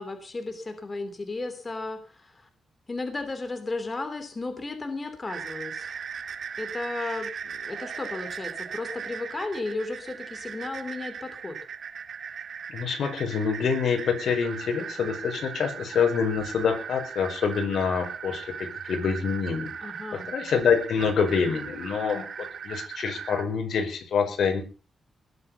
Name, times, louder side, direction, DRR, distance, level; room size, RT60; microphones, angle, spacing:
voice 1, 0.0-2.5 2.9-6.0 6.6-11.6 19.8-20.3, left 3 dB, 30° left, 7 dB, 3.4 m, -34 dB
sound 1, 5.3-23.4, right 7 dB, 65° right, 2.9 m, -38 dB
voice 2, 12.7-24.6, left 6 dB, 75° left, 6 dB, 5.1 m, -26 dB
20.5 x 8.0 x 7.1 m, 0.37 s
cardioid pair, 90°, 0 cm